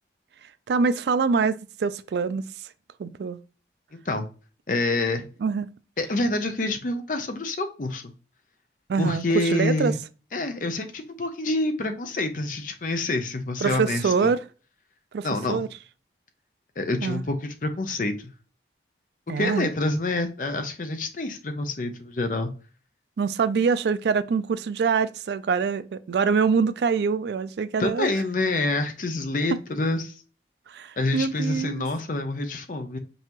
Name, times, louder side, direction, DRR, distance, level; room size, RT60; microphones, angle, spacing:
voice 1, 0.7-2.4 3.0-3.4 5.4-5.7 8.9-9.9 13.6-14.4 15.1-15.7 17.0-17.2 19.3-19.7 23.2-28.1 30.7-31.8, right 5 dB, 70° right, 0.3 m, -24 dB
voice 2, 3.9-4.3 4.7-5.3 6.0-8.0 9.0-10.0 10.3-14.3 15.2-15.6 16.8-18.3 19.4-22.5 27.8-30.1 31.0-33.0, left 2 dB, 45° left, 0.6 m, -27 dB
5.4 x 2.8 x 2.9 m
head